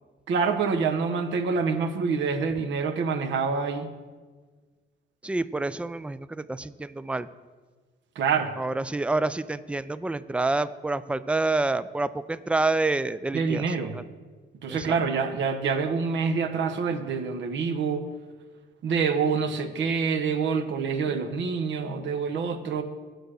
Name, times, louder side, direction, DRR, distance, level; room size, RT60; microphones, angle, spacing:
voice 1, 0.3-3.9 8.2-8.5 13.3-14.0 14.6-18.1 18.8-22.8, right 5 dB, 65° right, 6 dB, 0.9 m, -26 dB
voice 2, 5.2-7.3 8.6-14.0 14.7-15.0, right 2 dB, 5° right, 15 dB, 0.3 m, -28 dB
8.1 x 6.5 x 6.3 m, 1.4 s
cardioid pair, 90°, 20 cm